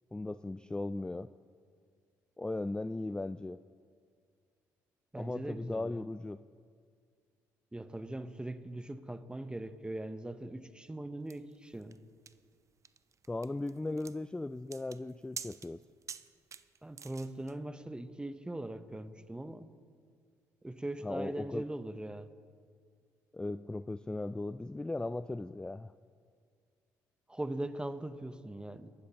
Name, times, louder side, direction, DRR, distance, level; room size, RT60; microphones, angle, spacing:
voice 1, 0.1-1.3 2.4-3.6 5.2-6.4 13.3-15.8 21.0-21.6 23.3-25.9, left 2 dB, 10° left, 0.3 m, -37 dB
voice 2, 5.1-6.0 7.7-12.0 16.8-19.7 20.6-22.3 27.3-28.9, right 1 dB, 10° right, 0.8 m, -41 dB
sound 1, 11.3-17.5, right 6 dB, 40° right, 0.6 m, -48 dB
22.0 x 12.5 x 2.9 m
hypercardioid pair, 55°, 8 cm